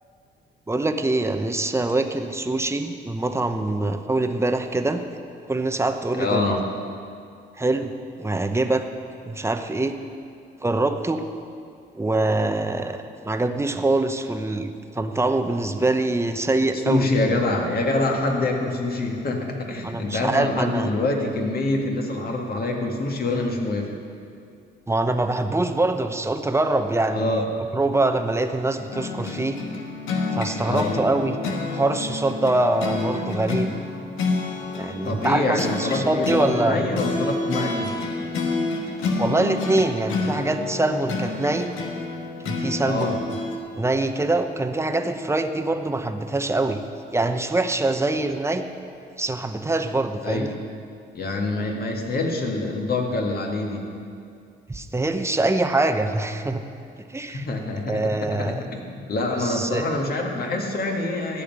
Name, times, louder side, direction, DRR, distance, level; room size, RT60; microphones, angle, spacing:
voice 1, 0.7-5.0 5.5-6.6 7.6-7.9 8.2-8.9 9.3-9.9 10.6-11.2 11.9-17.1 19.8-20.9 24.9-27.3 27.7-29.6 30.3-31.4 31.7-33.7 34.7-36.8 39.2-41.7 42.4-43.2 43.8-46.8 47.1-48.7 49.2-50.5 54.7-56.6 57.1-57.4 57.9-58.6 59.4-59.9, right 2 dB, 15° right, 7 dB, 0.9 m, -24 dB
voice 2, 6.2-6.6 16.7-23.9 27.1-27.4 30.6-31.0 35.0-38.0 42.8-43.2 48.1-48.2 50.2-50.6 51.1-53.9 57.3-61.4, left 2 dB, 50° left, 1 dB, 2.0 m, -25 dB
sound 1, 28.9-43.6, left 3 dB, 85° left, 1.6 m, -29 dB
14.0 x 5.8 x 9.5 m, 2.5 s
cardioid pair, 90°, 20 cm